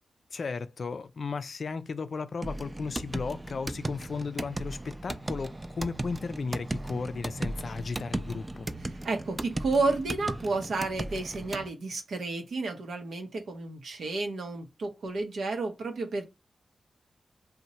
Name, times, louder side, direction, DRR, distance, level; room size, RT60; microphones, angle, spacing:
voice 1, 0.3-8.7, left 4 dB, 65° left, 0.3 m, -35 dB
sound 1, 2.4-11.7, right 1 dB, 25° right, 0.3 m, -36 dB
voice 2, 9.0-16.2, right 3 dB, 85° right, 0.7 m, -31 dB
2.7 x 2.1 x 4.1 m
cardioid pair, 60°, 0 cm